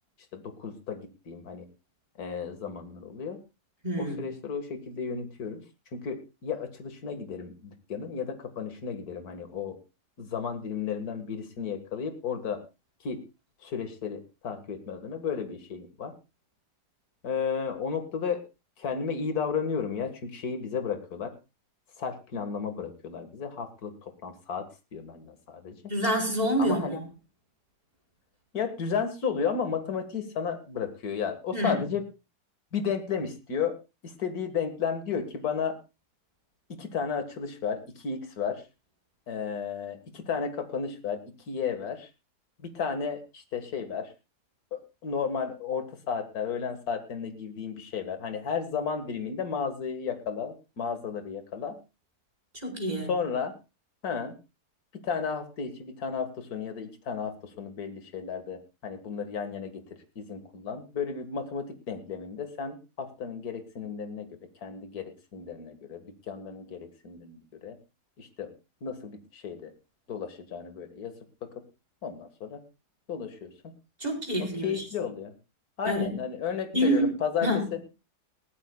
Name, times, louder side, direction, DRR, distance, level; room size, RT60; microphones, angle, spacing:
voice 1, 0.3-1.7 2.2-3.4 4.0-5.6 5.9-9.8 10.2-12.6 13.0-13.2 13.6-16.1 17.2-18.4 18.8-21.3 22.0-25.8 26.6-27.0 28.5-32.0 32.7-33.8 34.0-35.8 36.7-38.6 39.3-41.2 41.5-42.1 42.6-44.1 44.7-51.8 53.1-53.5 54.0-54.3 54.9-67.8 68.2-68.5 68.8-69.7 70.1-71.1 71.4-71.6 72.0-72.6 73.1-73.7 74.4-75.3 75.8-77.8, left 6 dB, 65° left, 8 dB, 2.2 m, -33 dB
voice 2, 3.8-4.3 25.9-27.1 31.5-31.8 52.5-53.1 74.0-74.9 75.8-76.2 76.7-77.1 77.4-77.7, equal, 25° right, 0 dB, 4.7 m, -27 dB
20.0 x 15.5 x 2.3 m, 0.29 s
omnidirectional pair, 1.7 m